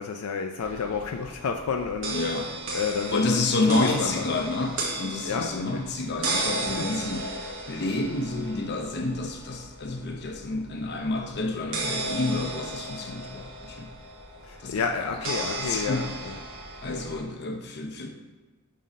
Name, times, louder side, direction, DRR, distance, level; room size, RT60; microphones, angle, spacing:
voice 1, 0.0-2.2 2.7-4.4 5.2-5.8 6.8-6.9 14.5-16.4, left 5 dB, 80° left, 4 dB, 0.4 m, -30 dB
sound 1, 0.6-17.2, right 2 dB, 65° right, 1.2 m, -35 dB
voice 2, 2.1-2.5 3.1-7.3 7.7-13.9 14.6-15.2 15.6-16.1 16.8-18.1, left 2 dB, 50° left, 3 dB, 0.8 m, -29 dB
5.7 x 3.7 x 5.2 m, 1.3 s
head